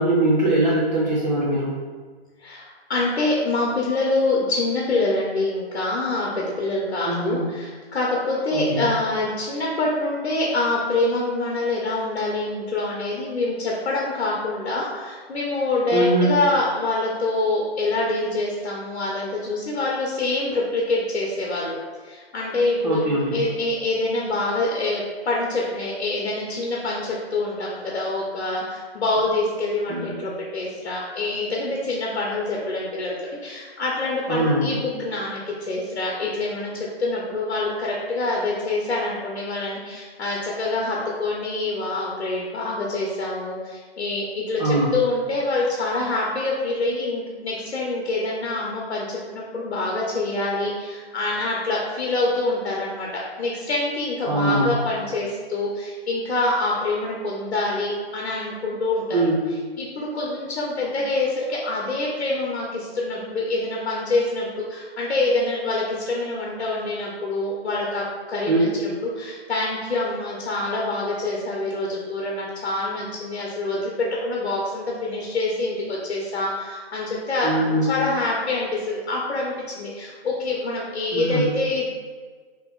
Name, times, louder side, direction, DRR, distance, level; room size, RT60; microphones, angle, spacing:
voice 1, 0.0-1.7 7.0-7.5 8.5-8.9 15.9-16.3 22.8-23.5 29.9-30.2 34.3-34.7 44.6-44.9 54.2-54.8 59.1-59.5 68.5-68.7 77.4-77.9 81.1-81.5, right 1 dB, 45° right, -6 dB, 0.4 m, -22 dB
voice 2, 2.4-21.8 22.0-23.0 23.3-33.2 33.4-59.2 59.8-77.5 77.9-81.9, left 2 dB, 90° left, -3 dB, 0.7 m, -25 dB
2.8 x 2.4 x 3.6 m, 1.5 s
hypercardioid pair, 180°, 32 cm